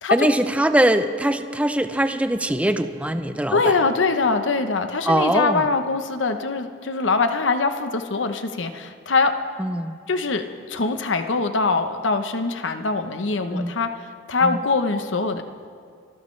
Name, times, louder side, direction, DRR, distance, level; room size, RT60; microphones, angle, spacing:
voice 1, 0.1-3.7 5.0-5.7 9.6-10.0 13.5-13.7 14.4-14.6, right 1 dB, 5° right, 9 dB, 0.6 m, -22 dB
voice 2, 3.5-9.3 10.1-13.9 14.3-15.4, left 4 dB, 80° left, 8 dB, 0.9 m, -23 dB
25.0 x 14.5 x 3.3 m, 2.2 s
head